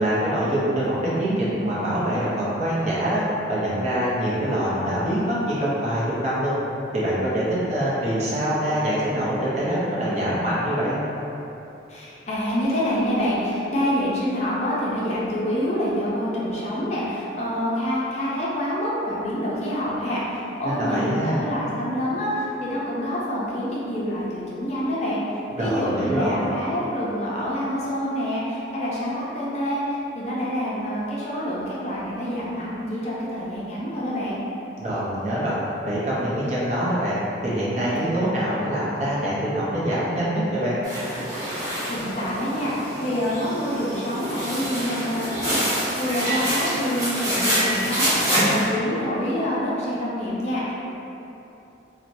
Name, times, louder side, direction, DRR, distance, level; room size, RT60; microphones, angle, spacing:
voice 1, 0.0-3.2 3.5-6.5 6.9-11.0 20.6-21.4 25.6-26.5 34.8-35.5 35.8-40.8, equal, 35° right, -8 dB, 0.6 m, -24 dB
voice 2, 11.9-34.4 41.9-50.7, equal, 35° left, -7 dB, 0.5 m, -27 dB
sound 1, 40.8-48.6, equal, 20° right, 1.3 m, -26 dB
4.4 x 2.1 x 2.6 m, 3.0 s
head